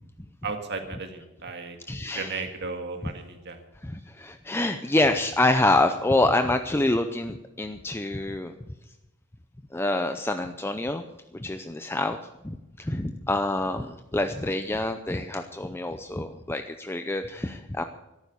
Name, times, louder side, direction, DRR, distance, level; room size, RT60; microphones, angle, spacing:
voice 1, 0.4-1.8 2.1-3.6, right 4 dB, 50° right, 5 dB, 2.0 m, -35 dB
voice 2, 1.9-2.4 3.8-8.5 9.7-11.0 11.3-12.2 12.4-17.8, left 2 dB, 10° left, 7 dB, 0.6 m, -26 dB
14.0 x 12.0 x 6.8 m, 0.98 s
head